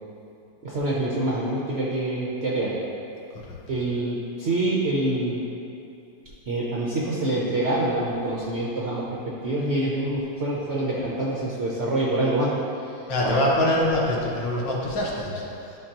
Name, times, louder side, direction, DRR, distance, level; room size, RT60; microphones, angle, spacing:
voice 1, 0.6-2.7 3.7-5.4 6.5-9.0 9.4-12.5 13.2-13.4, right 1 dB, 70° right, -5 dB, 0.6 m, -26 dB
voice 2, 13.1-15.8, left 1 dB, 75° left, -3 dB, 1.7 m, -24 dB
11.5 x 3.9 x 2.9 m, 2.7 s
omnidirectional pair, 2.1 m